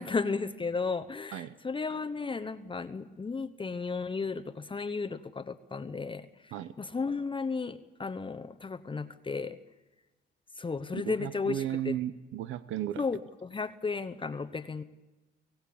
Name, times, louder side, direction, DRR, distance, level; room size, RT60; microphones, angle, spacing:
voice 1, 0.0-6.5 6.8-9.6 10.6-12.0 13.0-14.8, left 4 dB, 25° left, 10 dB, 0.9 m, -34 dB
voice 2, 10.9-13.0, right 11 dB, 85° right, 14 dB, 0.8 m, -35 dB
25.0 x 17.0 x 8.5 m, 1.1 s
cardioid pair, 90°, 20 cm